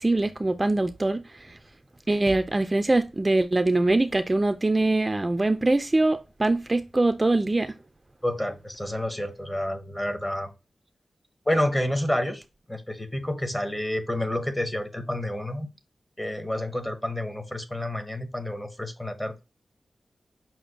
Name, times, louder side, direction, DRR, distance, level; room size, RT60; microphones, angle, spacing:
voice 1, 0.0-1.6 2.1-7.7, right 2 dB, 25° right, 0.3 m, -23 dB
voice 2, 8.2-10.5 11.5-12.4 12.7-15.7 16.2-19.3, left 1 dB, 15° left, 0.8 m, -29 dB
5.8 x 2.0 x 3.9 m
wide cardioid pair, 70°, 0 cm